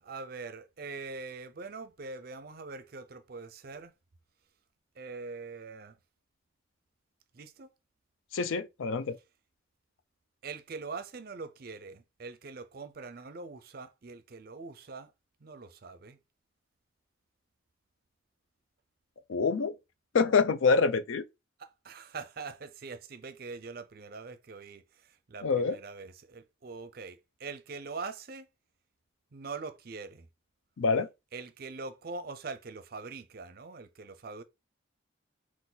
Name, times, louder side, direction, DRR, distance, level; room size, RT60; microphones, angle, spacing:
voice 1, 0.0-3.9 5.0-6.0 7.3-7.7 10.4-15.1 15.4-16.2 21.6-28.5 29.3-30.3 31.3-34.4, right 4 dB, 50° right, 0.5 m, -43 dB
voice 2, 8.3-9.2 19.3-19.8 20.1-21.2 25.4-25.8 30.8-31.1, left 4 dB, 90° left, 0.5 m, -26 dB
3.9 x 2.4 x 3.9 m
head